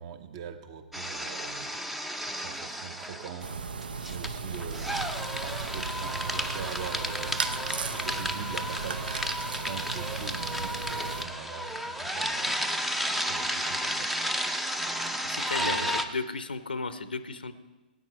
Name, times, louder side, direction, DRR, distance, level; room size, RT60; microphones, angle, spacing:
voice 1, 0.0-1.8 2.2-3.5 4.1-5.1 5.4-7.4 7.9-9.1 9.6-12.7 13.2-14.2 15.6-16.0, right 7 dB, 40° right, 9 dB, 1.1 m, -42 dB
sound 1, 0.9-3.5 3.8-16.1, equal, ahead, 0.6 m, -32 dB
sound 2, 3.4-11.3, right 4 dB, 65° right, 0.8 m, -36 dB
voice 2, 15.0-15.9 16.1-17.5, left 4 dB, 70° left, 12 dB, 0.7 m, -34 dB
17.5 x 9.4 x 4.6 m, 1.2 s
figure-of-eight pair, 115°, 5 cm